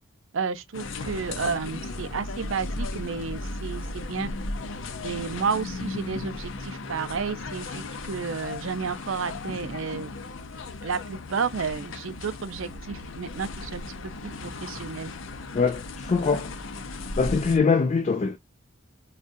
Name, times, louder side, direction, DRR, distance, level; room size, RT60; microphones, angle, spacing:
voice 1, 0.3-4.3 5.0-10.1 10.8-15.1, right 5 dB, 70° right, 0.5 m, -31 dB
sound 1, 0.7-17.6, left 2 dB, 70° left, 0.7 m, -36 dB
voice 2, 15.5-16.5 17.2-18.4, left 5 dB, 35° left, 0.3 m, -23 dB
5.0 x 2.3 x 2.5 m
head